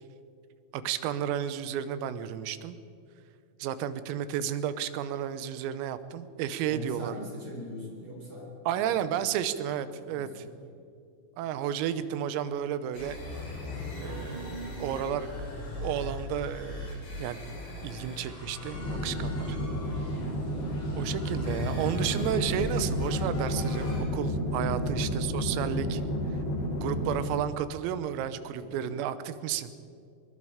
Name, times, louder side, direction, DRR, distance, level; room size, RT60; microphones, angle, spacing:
voice 1, 0.7-2.8 3.6-7.2 8.7-10.5 11.4-13.2 14.0-15.3 15.8-17.4 17.8-19.6 21.0-26.0 26.8-29.7, right 10 dB, 85° right, 12 dB, 3.6 m, -32 dB
voice 2, 6.7-9.0 10.1-10.6 24.7-25.0 27.1-27.4 28.6-29.0, equal, 25° right, -1 dB, 5.0 m, -42 dB
sound 1, 12.9-24.0, left 1 dB, 85° left, 10.5 m, -38 dB
sound 2, 18.7-27.2, equal, 65° left, 5.4 m, -31 dB
24.0 x 22.0 x 5.0 m, 2.4 s
omnidirectional pair, 6.0 m